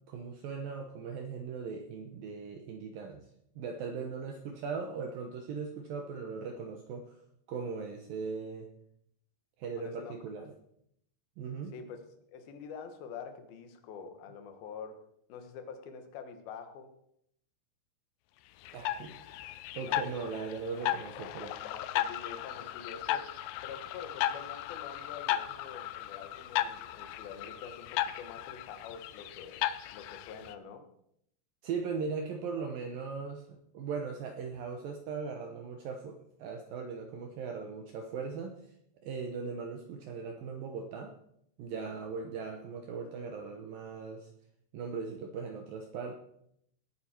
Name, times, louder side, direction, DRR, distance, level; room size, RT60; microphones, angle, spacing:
voice 1, 0.1-3.3 3.6-7.2 7.5-8.7 9.6-10.5 11.4-11.7 18.7-19.1 19.7-21.6 31.6-38.6 39.0-41.1 41.6-44.3 44.7-46.1, right 5 dB, 80° right, 4 dB, 2.1 m, -39 dB
voice 2, 9.8-10.5 11.7-12.0 12.3-15.0 15.3-16.9 18.9-19.2 19.8-20.2 21.6-23.3 23.6-30.9 41.7-42.0, left 6 dB, 65° left, 6 dB, 2.8 m, -46 dB
sound 1, 18.7-30.5, left 12 dB, 80° left, 2.5 m, -36 dB
18.5 x 9.5 x 4.4 m, 0.73 s
omnidirectional pair, 5.5 m